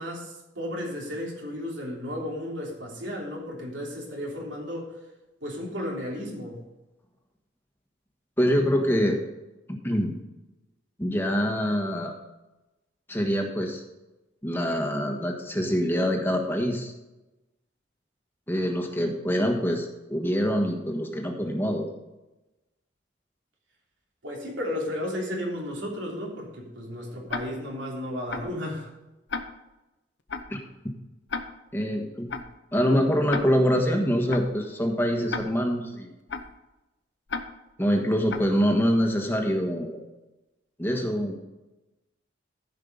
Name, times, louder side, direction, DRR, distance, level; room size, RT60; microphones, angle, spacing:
voice 1, 0.0-4.9 5.4-6.6 24.2-28.9, left 1 dB, 90° right, -1 dB, 3.3 m, -34 dB
voice 2, 8.4-9.2 9.8-10.1 11.0-12.1 13.1-13.8 14.4-16.9 18.5-21.9 30.5-30.6 31.7-32.3 32.7-36.1 37.8-40.0 40.8-41.4, equal, 10° left, 2 dB, 1.4 m, -25 dB
Tick-tock, 27.3-27.4 28.3-28.4 29.3-29.4 30.3-30.4 31.3-31.4 32.3-32.4 33.3-33.4 34.3-34.4 35.3-35.4 36.3-36.4 37.3-37.4 38.3-38.4, left 4 dB, 75° left, 0.9 m, -31 dB
14.0 x 5.6 x 5.3 m, 1.0 s
head